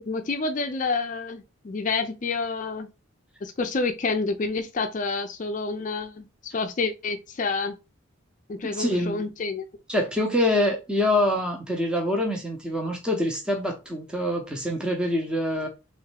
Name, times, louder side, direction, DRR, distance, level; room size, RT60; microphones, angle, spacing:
voice 1, 0.1-2.9 3.4-7.8 8.5-9.6, left 4 dB, 40° left, 0.4 m, -28 dB
voice 2, 8.7-9.3 9.9-15.7, left 1 dB, 5° right, 0.8 m, -25 dB
3.5 x 3.1 x 3.3 m
head